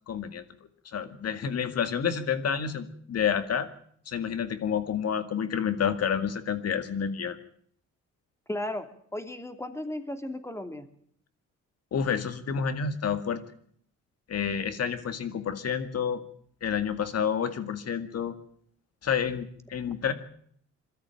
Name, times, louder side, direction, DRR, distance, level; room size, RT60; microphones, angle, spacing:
voice 1, 0.1-0.4 0.9-3.7 4.1-7.4 11.9-13.4 14.3-16.2 16.6-18.3 19.0-20.1, left 7 dB, 55° left, 10 dB, 2.1 m, -29 dB
voice 2, 8.5-8.9 9.1-10.9, left 1 dB, 10° left, 8 dB, 2.6 m, -35 dB
22.0 x 13.5 x 9.1 m, 0.63 s
cardioid pair, 90°, 30 cm